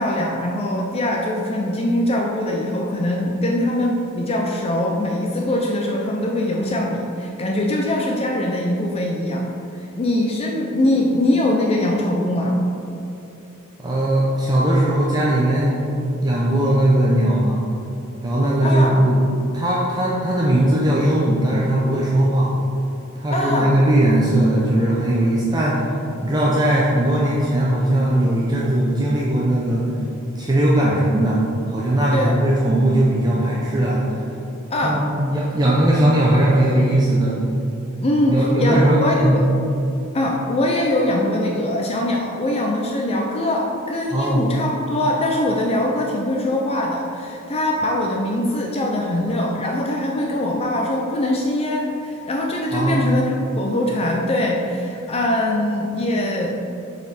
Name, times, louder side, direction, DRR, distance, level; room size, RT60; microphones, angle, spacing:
voice 1, 0.0-9.4 9.8-12.6 18.6-19.1 23.3-23.8 32.1-32.4 34.7-35.1 38.0-39.4 40.1-56.6, left 1 dB, 30° left, -1 dB, 0.5 m, -22 dB
voice 2, 13.8-15.8 16.2-17.6 18.2-19.2 19.5-22.5 23.2-25.9 26.2-29.9 30.3-31.4 31.7-34.2 34.8-37.4 38.3-39.4 44.1-44.4 52.7-53.0, right 1 dB, 20° right, -5 dB, 0.6 m, -18 dB
6.9 x 4.2 x 4.1 m, 2.8 s
head